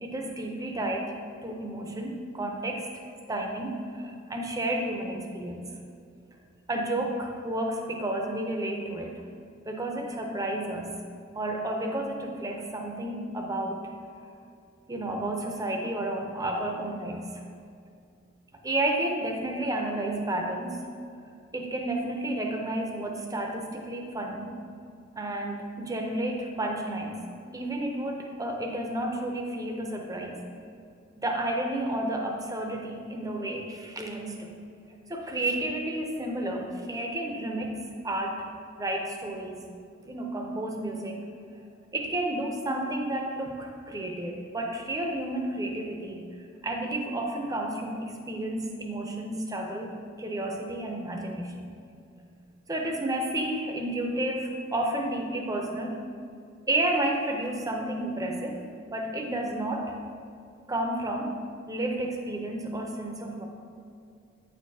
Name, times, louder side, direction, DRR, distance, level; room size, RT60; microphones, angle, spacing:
voice 1, 0.0-1.1 1.4-2.9 3.3-5.7 6.7-9.1 9.7-10.9 11.3-13.9 14.9-17.4 18.6-20.8 21.5-24.5 25.2-27.2 27.5-30.4 31.2-34.5 34.9-37.8 38.0-38.5 38.8-39.6 40.0-41.2 41.9-46.2 46.6-51.7 52.7-56.0 56.7-58.6 58.9-60.0 60.7-61.3 61.7-63.5, right 1 dB, 20° right, 2 dB, 0.6 m, -31 dB
8.6 x 6.5 x 2.7 m, 2.4 s
head